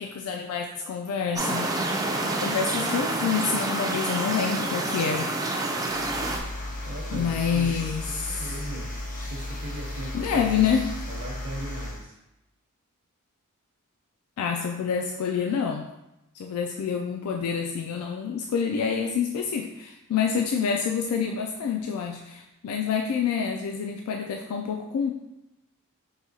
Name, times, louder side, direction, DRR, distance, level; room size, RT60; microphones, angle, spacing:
voice 1, 0.0-1.8 2.4-5.3 7.1-8.4 10.1-10.9 14.4-15.9 16.4-25.1, left 6 dB, 85° left, 2 dB, 0.3 m, -27 dB
sound 1, 1.4-6.4, right 2 dB, 15° right, 0.3 m, -28 dB
sound 2, 5.9-12.0, left 1 dB, 40° left, 0.6 m, -35 dB
voice 2, 6.8-10.8 11.1-12.2, right 1 dB, 55° right, 0 dB, 0.7 m, -39 dB
4.8 x 2.7 x 2.7 m, 0.91 s
head